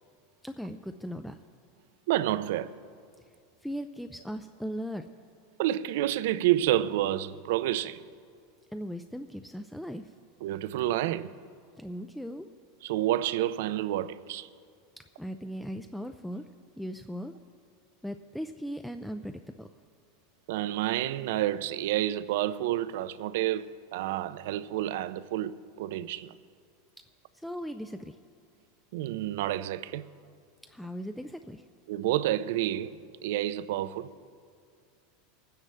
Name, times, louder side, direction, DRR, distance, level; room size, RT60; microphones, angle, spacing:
voice 1, 0.4-1.4 3.6-5.1 8.7-10.1 11.8-12.5 15.2-16.5 16.8-17.3 18.0-19.7 27.3-28.2 30.7-31.6, equal, ahead, 0.3 m, -38 dB
voice 2, 2.1-2.8 5.6-8.0 10.4-11.3 12.8-14.5 20.5-26.4 28.9-30.1 31.9-34.1, right 13 dB, 70° right, 0.5 m, -29 dB
24.0 x 9.7 x 3.3 m
supercardioid pair, 155°, 0 cm